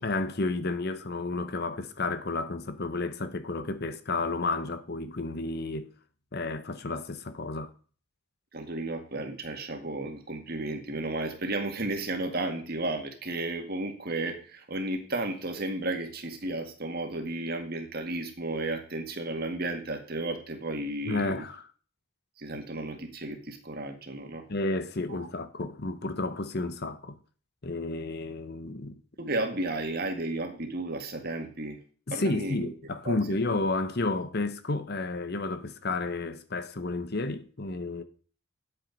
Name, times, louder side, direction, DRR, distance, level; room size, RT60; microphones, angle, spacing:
voice 1, 0.0-5.9 6.3-7.7 21.1-21.6 24.5-27.2 27.6-29.0 32.1-38.0, left 2 dB, 45° left, 0.8 m, -31 dB
voice 2, 8.5-21.4 22.4-24.4 25.1-25.3 29.2-31.8 32.1-32.7 33.0-33.2 33.5-33.6, right 2 dB, 45° right, 2.0 m, -33 dB
10.5 x 8.4 x 5.3 m
head